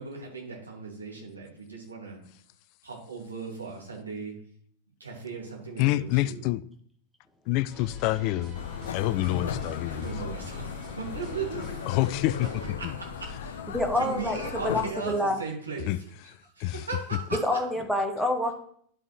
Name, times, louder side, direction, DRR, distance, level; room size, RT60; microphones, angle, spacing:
voice 1, 0.0-2.2 2.8-4.3 5.0-6.4 9.8-11.9 12.8-13.6 13.9-17.6, right 4 dB, 80° right, 2.3 m, -38 dB
voice 2, 5.8-6.6 7.5-8.6 8.9-10.1 11.9-12.5 12.8-12.9 15.8-16.0 16.6-16.9, left 17 dB, 45° left, 0.3 m, -27 dB
sound 1, 7.7-12.7, left 1 dB, 35° right, 3.1 m, -44 dB
sound 2, 8.5-14.9, left 7 dB, 60° left, 0.7 m, -36 dB
voice 3, 13.7-15.4 17.3-18.5, left 1 dB, ahead, 1.2 m, -27 dB
11.5 x 5.3 x 3.2 m
figure-of-eight pair, 90°, 0 cm